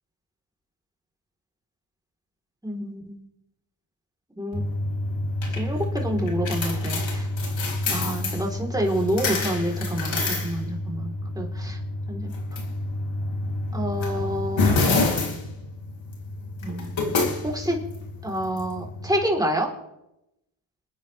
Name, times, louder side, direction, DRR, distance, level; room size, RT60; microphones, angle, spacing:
voice 1, 2.6-3.2 4.4-4.7 5.5-7.3 7.9-11.8 12.1-12.3 13.7-14.8 16.6-17.8 18.2-19.7, equal, 5° right, -1 dB, 4.2 m, -28 dB
sound 1, 4.5-19.2, left 2 dB, 60° left, 3.5 m, -28 dB
28.5 x 9.5 x 3.6 m, 0.87 s
cardioid pair, 70°, 50 cm